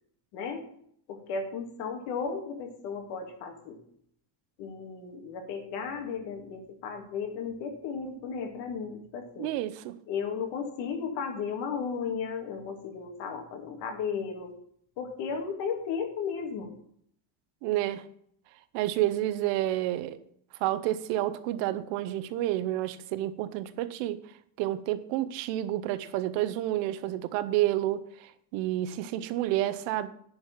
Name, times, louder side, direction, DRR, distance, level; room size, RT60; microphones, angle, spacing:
voice 1, 0.3-0.7 1.1-3.8 4.6-9.5 10.1-14.5 15.0-16.7, left 6 dB, 70° left, 2.3 m, -35 dB
voice 2, 9.4-10.0 17.6-18.0 18.7-20.2 20.6-24.2 24.6-30.1, right 14 dB, 75° right, 0.9 m, -29 dB
10.5 x 4.8 x 7.4 m
cardioid pair, 165°, 44 cm